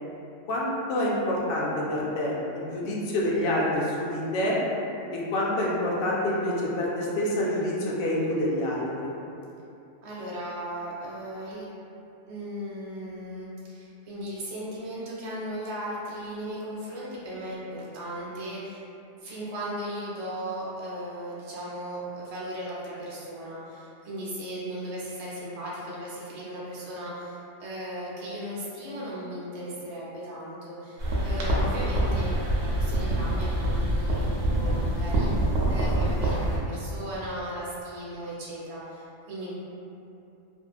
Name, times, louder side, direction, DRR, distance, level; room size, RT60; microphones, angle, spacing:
voice 1, 0.5-4.6 5.1-9.1, left 1 dB, 60° left, -5 dB, 0.7 m, -27 dB
voice 2, 10.0-11.7 12.2-18.8 19.2-39.5, right 1 dB, 75° right, -7 dB, 0.3 m, -37 dB
sound 1, 31.0-36.6, right 1 dB, 90° right, 0.9 m, -25 dB
2.7 x 2.3 x 2.3 m, 2.7 s
omnidirectional pair, 1.2 m